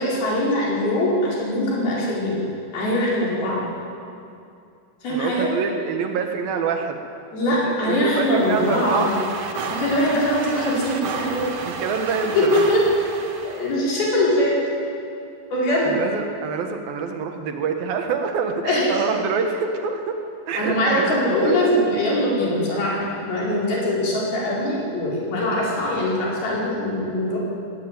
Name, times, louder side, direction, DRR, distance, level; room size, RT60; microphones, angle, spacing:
voice 1, 0.0-2.4 2.7-3.6 5.0-5.5 7.3-9.2 9.7-11.5 12.4-12.8 13.4-14.5 15.5-16.0 18.6-18.9 20.6-27.4, left 1 dB, 80° left, -5 dB, 6.8 m, -22 dB
voice 2, 5.1-7.0 7.5-9.1 11.6-12.6 15.8-20.2 20.5-21.6, right 5 dB, 75° right, 5 dB, 3.2 m, -26 dB
sound 1, 8.1-13.8, right 5 dB, 55° right, 2.0 m, -32 dB
19.5 x 17.5 x 9.2 m, 2.5 s
omnidirectional pair, 4.3 m